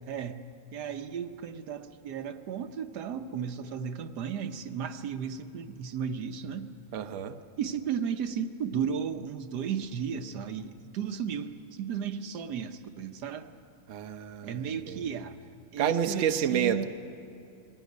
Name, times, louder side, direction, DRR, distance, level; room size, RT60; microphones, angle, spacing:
voice 1, 0.1-0.4 0.7-6.7 7.6-13.5 14.4-15.4 15.7-16.8, right 7 dB, 90° right, 8 dB, 1.5 m, -34 dB
voice 2, 6.9-7.4 13.9-15.1 15.8-16.8, right 8 dB, 55° right, 7 dB, 1.0 m, -29 dB
22.5 x 16.5 x 9.3 m, 2.6 s
omnidirectional pair, 1.7 m